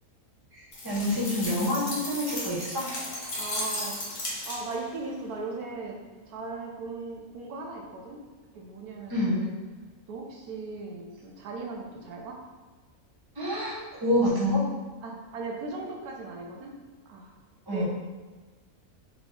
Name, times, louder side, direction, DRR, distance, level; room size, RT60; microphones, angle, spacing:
voice 1, 0.5-2.9 9.1-9.4 13.3-14.6 17.7-17.8, left 1 dB, 15° right, -7 dB, 1.0 m, -27 dB
sound 1, 0.7-4.9, left 1 dB, 45° left, 1.2 m, -35 dB
voice 2, 3.4-6.0 6.3-8.2 8.5-9.5 10.1-12.4 15.0-16.7 17.1-17.3 17.7-17.8, right 3 dB, 80° right, 0 dB, 1.2 m, -38 dB
3.6 x 3.5 x 3.7 m, 1.3 s
omnidirectional pair, 1.6 m